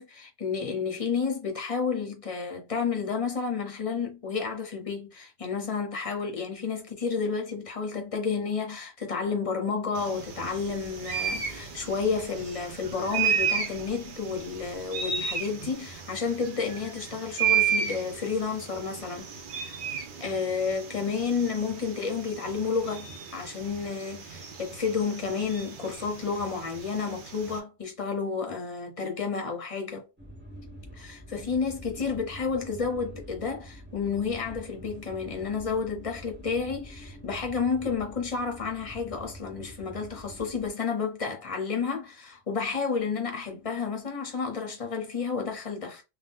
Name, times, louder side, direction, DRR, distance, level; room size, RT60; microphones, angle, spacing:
voice 1, 0.0-19.3 19.6-19.8 20.2-30.0 30.9-46.0, left 5 dB, 35° left, 0.7 m, -31 dB
sound 1, 9.9-27.6, right 7 dB, 60° right, 0.8 m, -33 dB
sound 2, 10.3-15.9, left 1 dB, 35° right, 1.3 m, -52 dB
sound 3, 30.2-40.7, equal, 10° right, 0.7 m, -46 dB
2.6 x 2.2 x 3.5 m
omnidirectional pair, 1.1 m